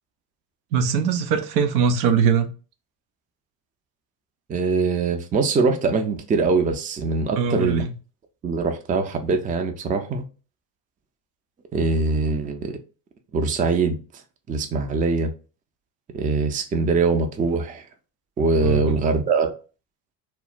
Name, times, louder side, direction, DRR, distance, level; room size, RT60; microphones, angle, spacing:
voice 1, 0.7-2.5 7.3-8.0 18.6-19.0, right 6 dB, 80° right, 0.6 m, -21 dB
voice 2, 4.5-7.8 8.4-10.2 11.7-12.7 13.3-14.0 14.5-15.3 16.1-17.8 18.4-19.5, right 4 dB, 20° right, 0.4 m, -22 dB
2.1 x 2.1 x 3.8 m
hypercardioid pair, 70°, 49 cm